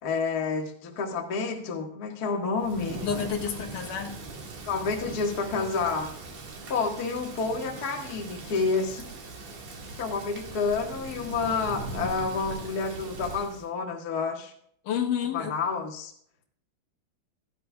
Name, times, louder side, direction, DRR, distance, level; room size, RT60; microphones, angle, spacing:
voice 1, 0.0-3.0 4.7-6.1 6.7-9.1 10.0-14.5 15.3-16.1, left 4 dB, 80° left, 1 dB, 0.8 m, -29 dB
Thunder / Rain, 2.6-13.7, right 3 dB, 50° right, 2.6 m, -40 dB
voice 2, 3.0-4.1 14.8-15.5, left 8 dB, 60° left, 1 dB, 2.7 m, -29 dB
16.0 x 11.5 x 2.3 m, 0.62 s
omnidirectional pair, 4.8 m